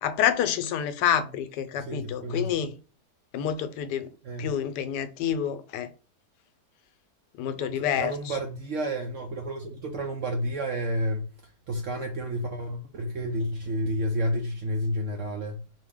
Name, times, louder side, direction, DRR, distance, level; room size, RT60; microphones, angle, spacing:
voice 1, 0.0-2.8 3.3-4.1 4.4-5.9 7.4-8.3, left 9 dB, 80° left, 1.2 m, -28 dB
voice 2, 1.8-2.6 4.2-4.6 7.5-11.3 11.7-15.6, equal, 70° right, 0.7 m, -30 dB
4.0 x 2.6 x 3.6 m
omnidirectional pair, 1.8 m